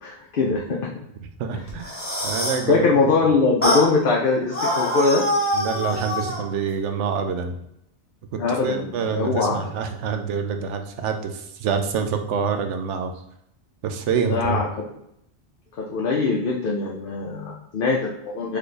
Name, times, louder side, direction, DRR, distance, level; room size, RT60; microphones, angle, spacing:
voice 1, 0.0-0.9 1.5-1.6 2.7-5.2 8.4-9.7 14.1-14.7 15.8-18.6, left 4 dB, 55° left, -2 dB, 0.7 m, -22 dB
voice 2, 1.2-2.8 5.5-7.6 8.3-13.1 13.8-14.6, right 6 dB, 90° right, 7 dB, 0.9 m, -26 dB
sound 1, 1.7-2.7 3.6-3.9 4.5-6.4, equal, 10° left, 1.1 m, -24 dB
4.2 x 3.3 x 3.2 m, 0.77 s
omnidirectional pair, 1.2 m